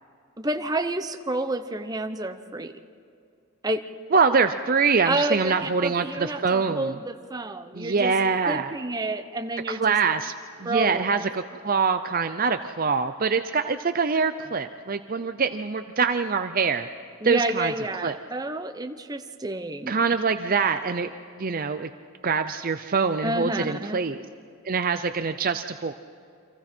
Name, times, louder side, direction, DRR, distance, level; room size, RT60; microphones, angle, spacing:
voice 1, 0.4-2.7 3.6-3.8 5.0-8.1 8.5-10.0 10.6-11.0 17.2-19.9 23.2-24.1, right 2 dB, 20° right, 7 dB, 0.9 m, -29 dB
voice 2, 4.1-6.9 7.7-8.7 9.7-10.3 10.6-16.9 17.2-17.7 18.0-18.2 19.9-21.1 21.4-21.9 22.2-24.2 24.6-25.9, right 5 dB, 40° right, 9 dB, 0.6 m, -24 dB
29.5 x 25.5 x 4.5 m, 2.4 s
head